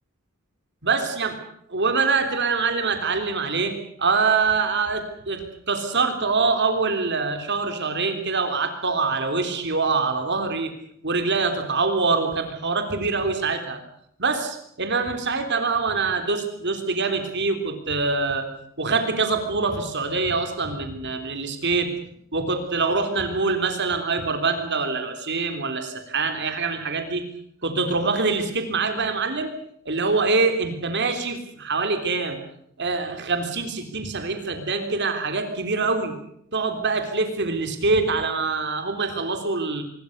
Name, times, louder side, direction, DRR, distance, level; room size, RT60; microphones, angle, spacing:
voice 1, 0.8-1.4 1.7-10.7 11.0-13.8 14.2-18.5 18.8-21.9 22.3-27.3 27.6-29.5 29.8-32.4 32.8-36.1 36.5-39.8, right 4 dB, 55° right, 6 dB, 3.5 m, -24 dB
25.5 x 22.5 x 6.7 m, 0.71 s
head